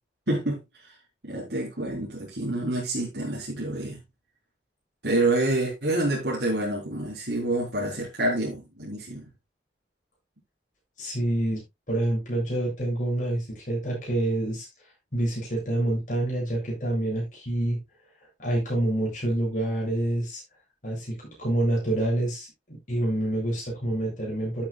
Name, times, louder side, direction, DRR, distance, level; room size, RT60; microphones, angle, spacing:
voice 1, 0.3-0.9 1.2-4.0 5.0-9.3, right 2 dB, 70° right, 3.8 m, -27 dB
voice 2, 11.0-14.7 15.1-17.8 18.4-20.4 20.8-24.6, right 1 dB, 45° left, 7.7 m, -27 dB
13.5 x 8.4 x 2.4 m
head